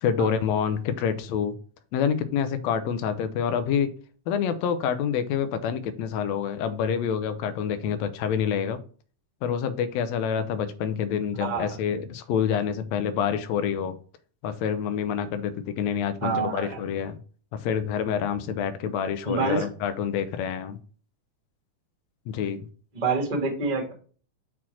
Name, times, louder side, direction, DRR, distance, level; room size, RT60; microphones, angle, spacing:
voice 1, 0.0-1.6 1.9-3.9 4.3-8.8 9.4-14.0 14.4-17.2 17.5-20.8 22.3-22.7, left 7 dB, 80° left, 10 dB, 1.6 m, -27 dB
voice 2, 11.4-11.8 16.2-16.8 19.2-19.7 22.9-23.9, right 4 dB, 30° right, 2 dB, 0.8 m, -27 dB
5.9 x 4.2 x 4.3 m, 0.41 s
omnidirectional pair, 3.5 m